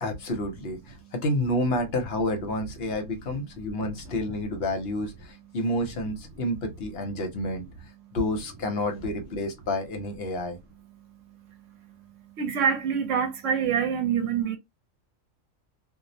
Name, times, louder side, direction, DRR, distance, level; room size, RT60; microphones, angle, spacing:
voice 1, 0.0-7.6 8.1-10.6, left 1 dB, 60° left, 0.9 m, -29 dB
voice 2, 12.4-14.6, right 7 dB, 80° right, 1.0 m, -25 dB
2.4 x 2.0 x 2.6 m
omnidirectional pair, 1.3 m